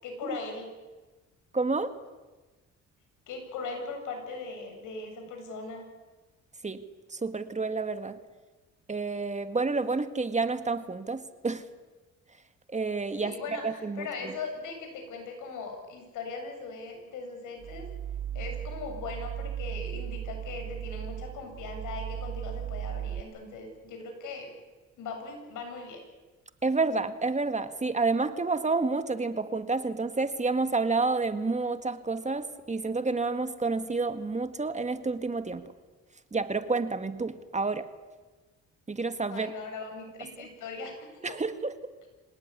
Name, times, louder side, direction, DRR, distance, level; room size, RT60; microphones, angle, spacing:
voice 1, 0.0-0.7 3.3-5.9 8.0-8.1 13.2-17.9 18.3-24.6 25.0-26.0 39.3-41.3, left 4 dB, 85° left, 4 dB, 7.6 m, -39 dB
voice 2, 1.5-1.9 6.6-6.8 7.1-8.2 8.9-11.7 12.7-14.3 26.6-35.7 36.3-37.9 38.9-39.5 40.4-40.5 41.2-41.7, right 3 dB, 25° right, 10 dB, 1.7 m, -29 dB
sound 1, 17.6-23.2, right 10 dB, 75° right, 1.3 m, -36 dB
25.5 x 18.5 x 9.8 m, 1.3 s
cardioid pair, 90°, 30 cm